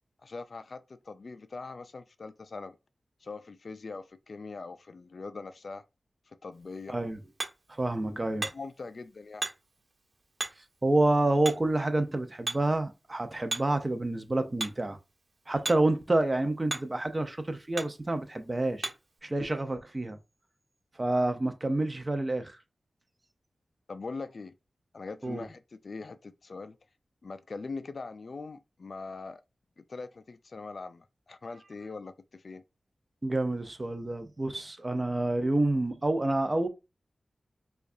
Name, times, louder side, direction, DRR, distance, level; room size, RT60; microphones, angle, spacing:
voice 1, 0.2-2.8 3.2-5.8 6.3-7.0 8.1-9.5 23.9-24.6 24.9-26.8 27.2-29.4 29.8-32.6, left 4 dB, 65° left, 0.3 m, -42 dB
Hammer, 6.5-19.2, right 2 dB, 55° right, 1.4 m, -41 dB
voice 2, 6.9-7.2 7.7-8.5 10.8-15.0 15.5-18.9 19.2-20.2 21.0-22.6 25.2-25.5 33.2-36.7, right 2 dB, 35° right, 0.7 m, -28 dB
4.5 x 2.4 x 2.6 m
cardioid pair, 45°, 0 cm